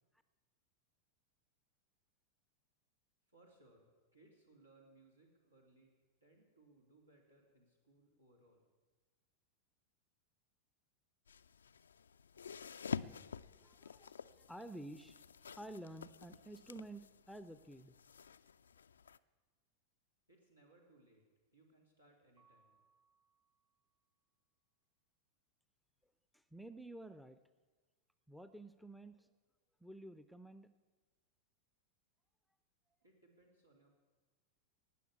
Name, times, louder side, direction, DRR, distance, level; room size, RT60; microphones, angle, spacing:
voice 1, 3.3-5.9 6.2-8.7 20.3-21.2 21.5-22.8 33.0-33.9, right 2 dB, 80° right, 0 dB, 3.2 m, -67 dB
sound 1, 11.3-19.2, left 6 dB, 70° left, 0.4 m, -48 dB
voice 2, 13.6-15.2 15.6-18.0 26.3-27.4 28.3-29.3 29.8-30.7, right 1 dB, ahead, 11 dB, 0.6 m, -51 dB
Mallet percussion, 22.4-24.2, right 5 dB, 30° right, 1.7 m, -74 dB
18.5 x 7.0 x 8.3 m, 1.3 s
figure-of-eight pair, 90°, 0 cm